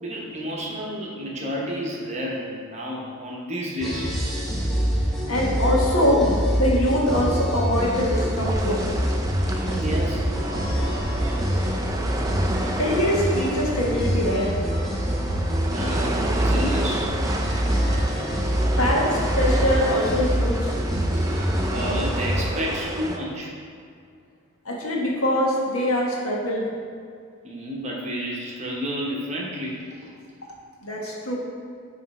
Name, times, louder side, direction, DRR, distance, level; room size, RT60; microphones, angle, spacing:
voice 1, 0.0-4.1 9.5-10.3 12.3-12.6 15.7-17.1 18.5-18.8 21.7-23.5 27.4-30.1, equal, 30° right, -3 dB, 0.9 m, -31 dB
sound 1, 3.8-22.4, equal, ahead, 1.0 m, -25 dB
voice 2, 5.3-6.3 6.6-8.8 12.8-14.5 18.6-20.8 24.6-26.7 30.8-31.4, left 1 dB, 85° left, -3 dB, 1.3 m, -23 dB
sound 2, 7.8-23.2, right 1 dB, 15° right, 0.3 m, -31 dB
9.0 x 3.2 x 4.2 m, 2.2 s
head